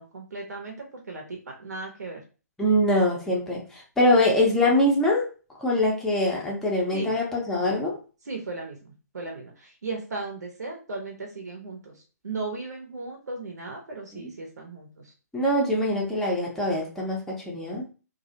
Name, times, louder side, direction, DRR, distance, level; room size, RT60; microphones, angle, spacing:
voice 1, 0.0-2.2 6.9-7.2 8.2-15.1, right 3 dB, 70° right, 1 dB, 0.7 m, -36 dB
voice 2, 2.6-5.3 5.6-8.0 14.1-14.3 15.3-17.9, left 1 dB, 5° left, -3 dB, 0.5 m, -23 dB
2.3 x 2.0 x 2.7 m, 0.34 s
figure-of-eight pair, 135°, 9 cm